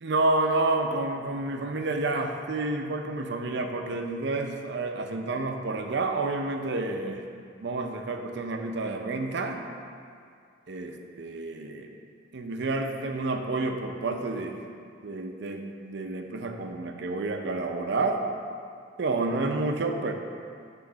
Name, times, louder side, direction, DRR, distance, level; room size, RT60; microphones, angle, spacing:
voice 1, 0.0-7.2 7.6-9.7 10.7-11.9 12.3-14.6 15.0-18.2 19.0-20.1, right 2 dB, 65° right, 4 dB, 0.6 m, -29 dB
8.6 x 3.2 x 5.1 m, 2.3 s
head